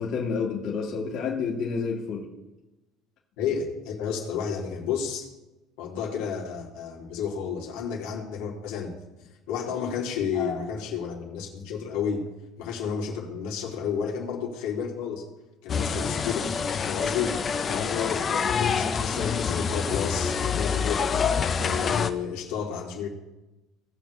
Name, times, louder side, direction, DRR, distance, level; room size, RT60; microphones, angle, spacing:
voice 1, 0.0-2.3 10.3-10.6 17.7-18.2, left 5 dB, 50° left, -4 dB, 2.0 m, -30 dB
voice 2, 3.4-5.3 5.8-8.9 9.2-12.2 12.6-15.2 15.6-16.5 16.8-17.4 17.7-21.1 21.6-23.1, left 7 dB, 85° left, -2 dB, 2.7 m, -31 dB
sound 1, 15.7-22.1, left 6 dB, 25° left, 0.6 m, -27 dB
18.0 x 6.9 x 3.3 m, 1.0 s
cardioid pair, 155°, 0 cm